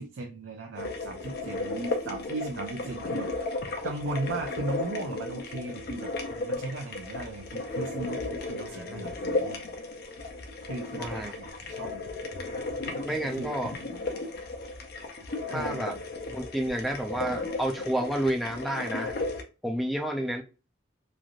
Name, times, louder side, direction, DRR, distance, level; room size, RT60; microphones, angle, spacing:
voice 1, 0.0-3.5 3.8-9.7 10.7-12.0 12.4-12.6 12.8-13.5 15.5-16.0, right 2 dB, 80° right, 0.4 m, -37 dB
sound 1, 0.8-19.4, left 2 dB, 55° left, 0.5 m, -35 dB
voice 2, 8.7-9.0 11.0-11.3 13.0-13.7 15.5-16.0 16.3-19.2 19.6-20.4, right 1 dB, ahead, 0.4 m, -30 dB
3.1 x 2.5 x 2.4 m
head